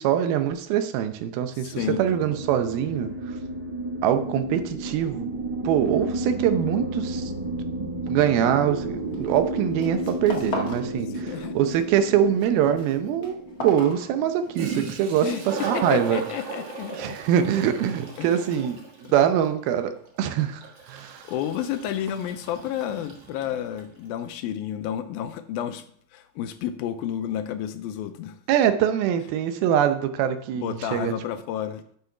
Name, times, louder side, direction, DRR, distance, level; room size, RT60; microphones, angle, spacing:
voice 1, 0.0-3.1 4.0-5.3 5.6-7.3 7.7-16.2 17.0-19.9 20.2-21.3 28.5-31.1, right 9 dB, 80° right, 9 dB, 2.6 m, -24 dB
voice 2, 1.6-2.0 11.1-11.5 15.2-17.2 18.2-18.7 19.0-19.3 21.2-25.9 26.1-28.4 30.6-31.8, left 10 dB, 85° left, 9 dB, 2.4 m, -31 dB
sound 1, 1.7-16.3, right 1 dB, 35° right, 1.7 m, -33 dB
sound 2, 9.1-9.5 9.7-10.9 11.2-11.8 12.2-14.6, left 2 dB, 55° left, 1.0 m, -36 dB
Toilet flush, 14.5-23.9, right 4 dB, 60° right, 1.2 m, -37 dB
8.0 x 6.5 x 5.7 m, 0.62 s
omnidirectional pair, 4.4 m